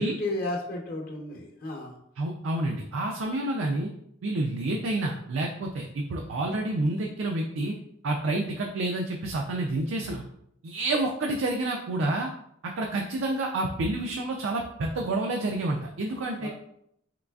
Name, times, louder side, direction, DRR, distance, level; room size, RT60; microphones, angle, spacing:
voice 1, 0.0-2.0 16.4-16.5, left 1 dB, 50° left, -1 dB, 0.7 m, -33 dB
voice 2, 2.2-3.9 4.2-7.7 8.0-10.2 10.6-12.3 12.8-16.5, right 2 dB, 90° right, 1 dB, 0.4 m, -29 dB
3.7 x 3.2 x 2.3 m, 0.73 s
head